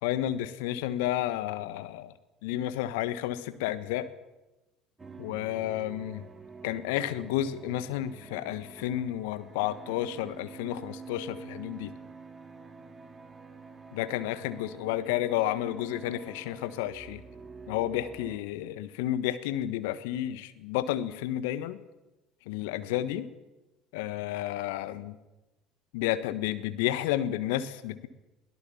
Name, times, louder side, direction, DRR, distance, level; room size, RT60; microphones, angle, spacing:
voice 1, 0.0-2.1 2.4-4.1 5.2-6.2 6.6-11.9 13.9-17.2 17.7-21.8 22.5-23.3 23.9-25.2 25.9-28.1, left 13 dB, 70° left, 13 dB, 1.4 m, -31 dB
sound 1, 5.0-18.4, right 4 dB, 20° right, 4.2 m, -47 dB
23.0 x 17.0 x 7.2 m, 1.0 s
hypercardioid pair, 60°, 0 cm